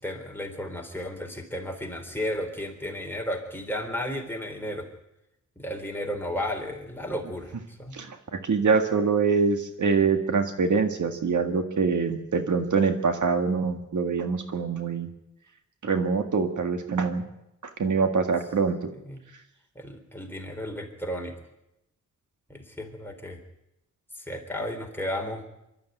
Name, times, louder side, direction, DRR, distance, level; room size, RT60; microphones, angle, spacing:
voice 1, 0.0-4.9 5.6-8.0 19.0-19.2 19.8-21.3 22.5-23.4 24.2-25.5, left 1 dB, 5° left, 2 dB, 3.8 m, -33 dB
voice 2, 7.9-15.1 15.8-17.2 17.8-18.8, right 5 dB, 75° right, 6 dB, 1.9 m, -24 dB
24.0 x 13.0 x 9.3 m, 0.88 s
wide cardioid pair, 95°, 30 cm